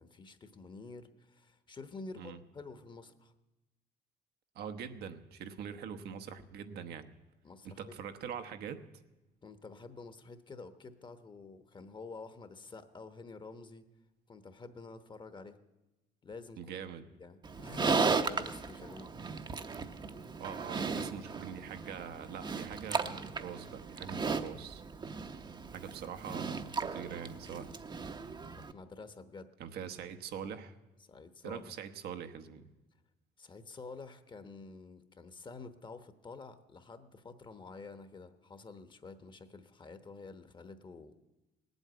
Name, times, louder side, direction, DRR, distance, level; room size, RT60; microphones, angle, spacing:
voice 1, 0.0-3.3 7.4-8.0 9.4-13.9 14.3-15.6 16.2-16.7 17.2-19.1 28.5-29.5 31.0-31.7 33.4-41.1, left 3 dB, 30° left, 11 dB, 1.1 m, -49 dB
voice 2, 4.5-7.1 7.6-8.9 16.6-17.0 20.4-24.8 25.7-27.7 29.6-30.7 31.4-32.7, right 8 dB, 70° right, 8 dB, 1.0 m, -43 dB
Livestock farm animals working animals, 17.4-28.7, right 4 dB, 25° right, 0.8 m, -36 dB
18.5 x 8.1 x 9.2 m, 1.0 s
cardioid pair, 110°, 17 cm